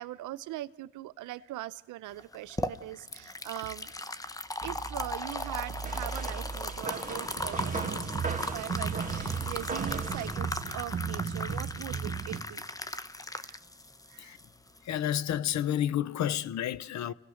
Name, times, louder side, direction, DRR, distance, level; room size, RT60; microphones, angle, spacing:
voice 1, 0.0-3.9 4.6-12.6 13.3-13.6 14.1-14.4, right 15 dB, 85° right, 0.8 m, -41 dB
sound 1, 2.2-15.2, left 2 dB, 10° left, 0.9 m, -38 dB
sound 2, 4.6-10.4, right 4 dB, 25° right, 2.3 m, -39 dB
sound 3, 7.4-12.4, right 6 dB, 45° right, 1.6 m, -35 dB
voice 2, 14.8-17.1, left 10 dB, 65° left, 0.8 m, -30 dB
29.5 x 18.0 x 6.4 m
cardioid pair, 90°, 30 cm